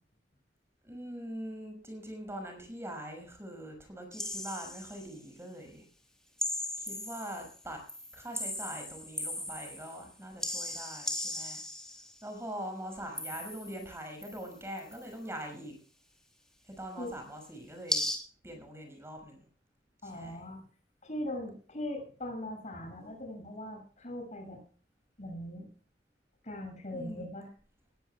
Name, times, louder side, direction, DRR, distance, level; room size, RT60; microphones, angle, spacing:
voice 1, 0.8-5.8 6.8-7.8 8.1-11.6 12.2-15.7 16.8-18.1 18.4-19.5 20.0-20.4 26.9-27.3, right 1 dB, 15° right, 4 dB, 6.1 m, -43 dB
sound 1, 4.1-5.1 6.4-7.6 7.9-10.0 10.4-12.2 13.2-13.9 14.2-15.1 17.9-18.2, left 1 dB, 5° left, 3.7 m, -37 dB
voice 2, 20.0-20.6 21.0-24.6 25.2-25.7 26.4-27.5, left 1 dB, 40° left, 4 dB, 6.8 m, -40 dB
20.0 x 16.0 x 2.3 m, 0.42 s
head